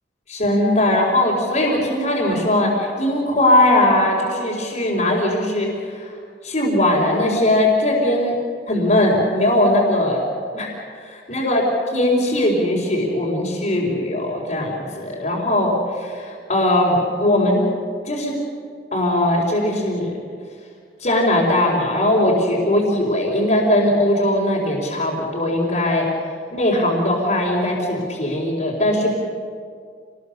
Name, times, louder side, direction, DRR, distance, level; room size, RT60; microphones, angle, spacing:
voice 1, 0.3-6.1 6.4-8.3 8.7-10.2 10.5-10.7 11.3-11.6 11.9-17.6 18.0-18.4 18.9-20.1 21.0-26.1 26.5-29.1, left 1 dB, 45° left, -7 dB, 4.3 m, -19 dB
28.0 x 20.5 x 6.7 m, 2.1 s
head